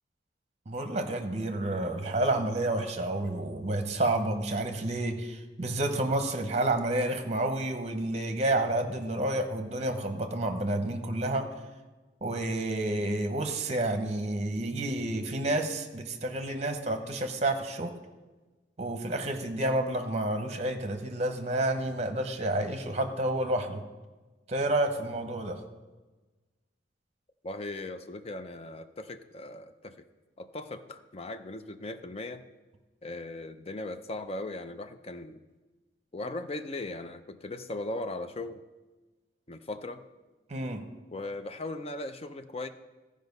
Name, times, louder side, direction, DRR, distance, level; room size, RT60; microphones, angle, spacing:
voice 1, 0.7-11.5 12.2-17.9 18.8-23.8 24.5-25.6 40.5-40.8, right 1 dB, 35° right, 7 dB, 0.9 m, -30 dB
voice 2, 27.4-29.9 30.4-32.4 33.0-35.4 36.1-38.6 39.5-40.0 41.1-42.7, left 2 dB, 35° left, 9 dB, 0.5 m, -38 dB
14.0 x 5.1 x 5.4 m, 1.2 s
head